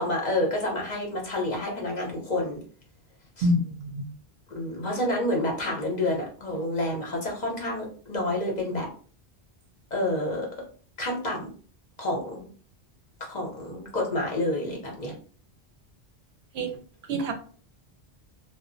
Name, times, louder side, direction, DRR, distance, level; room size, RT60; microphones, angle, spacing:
voice 1, 0.0-2.6 3.4-3.5 4.5-8.9 9.9-10.5 11.0-11.5 12.0-12.5 13.2-15.1, left 1 dB, 45° left, -1 dB, 0.8 m, -29 dB
voice 2, 3.4-4.1 16.5-16.7 17.1-17.3, equal, 75° right, 5 dB, 0.8 m, -26 dB
2.1 x 2.0 x 3.7 m, 0.42 s
omnidirectional pair, 1.1 m